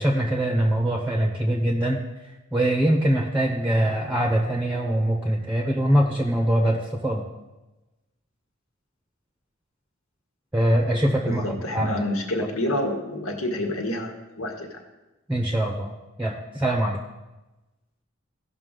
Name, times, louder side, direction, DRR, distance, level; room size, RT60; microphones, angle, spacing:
voice 1, 0.0-2.0 2.5-7.2 10.5-12.0 15.3-15.9 16.2-17.0, right 1 dB, 5° right, 1 dB, 0.8 m, -23 dB
voice 2, 11.2-14.1 14.4-14.8, left 1 dB, 90° left, 1 dB, 1.6 m, -28 dB
16.0 x 5.9 x 3.8 m, 1.1 s
head